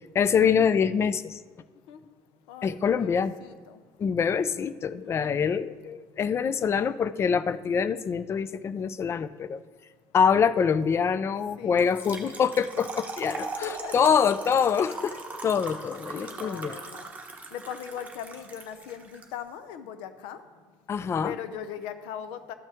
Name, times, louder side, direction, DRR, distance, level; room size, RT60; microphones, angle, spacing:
voice 1, 0.1-1.4 2.6-3.3 4.0-9.6 10.1-13.5 13.9-16.8 20.9-21.3, left 6 dB, 30° left, 15 dB, 0.3 m, -25 dB
voice 2, 2.5-3.8 5.0-5.5 11.6-12.4 13.4-14.6 16.1-17.1 17.5-20.4 21.2-22.5, left 8 dB, 90° left, 11 dB, 0.7 m, -40 dB
Trickle dribble / Fill (with liquid), 11.8-19.3, right 3 dB, 20° right, 1.1 m, -40 dB
13.0 x 5.6 x 3.5 m, 1.4 s
cardioid pair, 125°, 9 cm